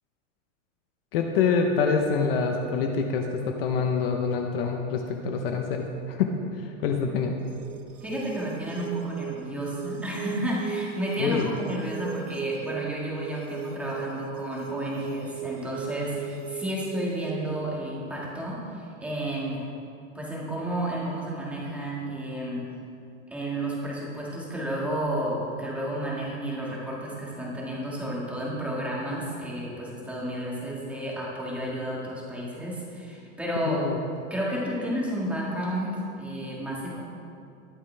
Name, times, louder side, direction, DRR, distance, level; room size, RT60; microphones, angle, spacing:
voice 1, 1.1-7.4 11.2-11.5 33.7-34.0, left 5 dB, 45° left, 3 dB, 0.9 m, -26 dB
sound 1, 7.4-17.4, right 8 dB, 80° right, 1.2 m, -38 dB
voice 2, 8.0-19.7 20.1-22.7 23.3-33.8 34.3-37.0, right 1 dB, 5° right, -5 dB, 1.8 m, -31 dB
20.5 x 7.3 x 3.4 m, 2.6 s
supercardioid pair, 165°, 39 cm